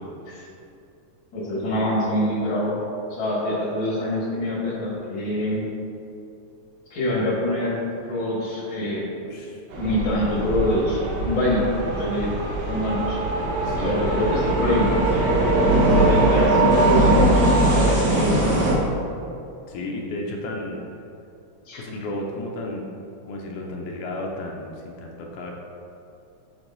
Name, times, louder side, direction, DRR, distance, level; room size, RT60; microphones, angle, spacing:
voice 1, 1.3-2.8 3.1-5.6 6.9-7.8 8.1-9.0 9.8-12.3 12.7-13.2 13.8-15.4 15.8-18.6 21.7-21.8, left 1 dB, 50° left, -6 dB, 1.9 m, -25 dB
voice 2, 9.2-9.6 13.6-14.1 19.7-20.8 21.8-22.8 23.2-25.5, left 1 dB, 85° left, -1 dB, 2.1 m, -33 dB
sound 1, 9.7-18.7, right 1 dB, 65° right, 1.9 m, -21 dB
6.3 x 6.2 x 2.6 m, 2.6 s
omnidirectional pair, 3.4 m